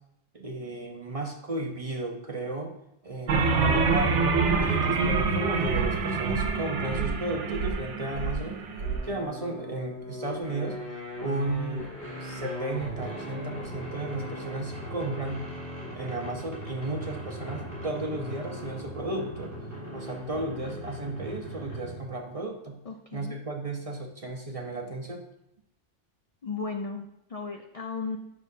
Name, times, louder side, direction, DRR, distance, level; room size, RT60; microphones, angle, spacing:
voice 1, 0.3-2.7 3.0-4.2 4.6-8.6 9.0-10.8 11.2-11.9 12.2-15.5 15.9-19.5 19.9-22.8 23.1-25.3, right 2 dB, 35° right, 2 dB, 0.6 m, -34 dB
sound 1, 3.3-9.0, right 4 dB, 75° right, 1.0 m, -26 dB
sound 2, 8.8-22.1, left 1 dB, 15° left, 3.1 m, -39 dB
voice 2, 22.8-23.4 26.4-28.2, left 4 dB, 55° left, 4 dB, 0.4 m, -35 dB
9.4 x 5.9 x 2.7 m, 0.84 s
omnidirectional pair, 1.2 m